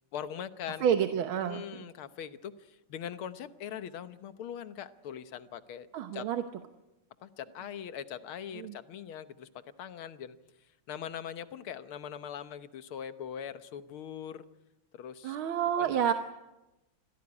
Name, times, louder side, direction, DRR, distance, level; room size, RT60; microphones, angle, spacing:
voice 1, 0.1-0.9 1.4-5.9 6.1-6.3 7.2-9.5 9.8-10.4 10.9-14.4 14.9-15.4 15.8-16.1, left 9 dB, 85° left, 12 dB, 2.0 m, -41 dB
voice 2, 0.8-1.6 5.9-6.4 8.6-8.7 15.2-16.1, right 9 dB, 75° right, 8 dB, 1.9 m, -28 dB
26.0 x 16.5 x 9.8 m, 0.99 s
omnidirectional pair, 2.3 m